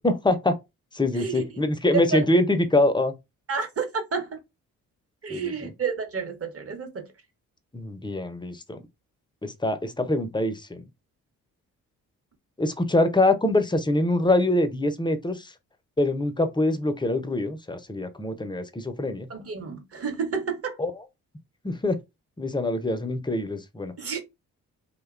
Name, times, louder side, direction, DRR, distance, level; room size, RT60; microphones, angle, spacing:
voice 1, 0.0-0.5 0.9-3.1 5.3-5.5 7.7-8.8 9.4-10.8 12.6-15.5 16.0-19.3 20.8-20.9 21.6-22.0 22.4-23.9, left 2 dB, 10° left, 0.5 m, -24 dB
voice 2, 1.9-2.3 3.5-4.4 5.2-7.1 19.3-20.8 24.0-24.2, right 5 dB, 40° right, 0.9 m, -30 dB
2.7 x 2.2 x 2.4 m
hypercardioid pair, 45°, 38 cm